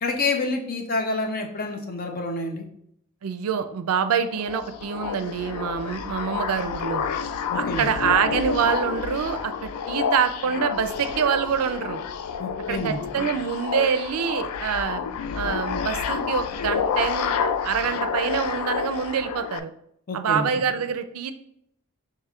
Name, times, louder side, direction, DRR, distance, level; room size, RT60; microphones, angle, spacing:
voice 1, 0.0-2.7 7.5-7.9 12.4-13.0 20.1-20.5, left 3 dB, 45° left, 3 dB, 0.6 m, -28 dB
voice 2, 3.2-7.1 7.5-12.0 12.7-15.0 15.3-19.7 20.1-21.3, right 7 dB, 75° right, 9 dB, 0.4 m, -26 dB
sound 1, 4.3-19.6, left 6 dB, 85° left, 0.3 m, -29 dB
5.7 x 2.9 x 2.4 m, 0.71 s
head